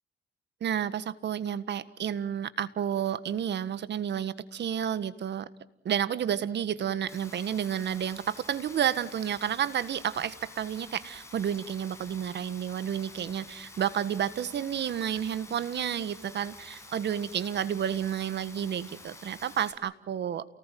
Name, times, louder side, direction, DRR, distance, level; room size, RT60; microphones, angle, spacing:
voice 1, 0.6-5.5 5.8-20.4, right 9 dB, 60° right, 14 dB, 1.6 m, -31 dB
Rain, 7.1-19.7, left 2 dB, 15° left, 7.4 m, -49 dB
29.0 x 19.0 x 9.3 m, 0.74 s
cardioid pair, 90°, 20 cm